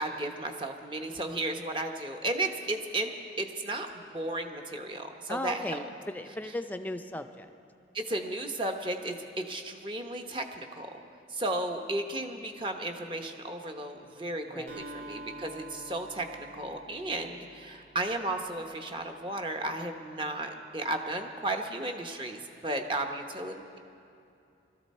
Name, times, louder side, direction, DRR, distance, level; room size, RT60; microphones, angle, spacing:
voice 1, 0.0-5.8 7.9-10.9 11.3-16.3 16.5-23.8, right 2 dB, 30° right, 4 dB, 0.9 m, -34 dB
voice 2, 5.3-7.5 14.5-14.8, left 1 dB, 10° left, 8 dB, 0.5 m, -36 dB
Acoustic guitar, 14.7-18.5, right 2 dB, 80° right, 1.7 m, -47 dB
21.0 x 13.5 x 4.3 m, 2.6 s
head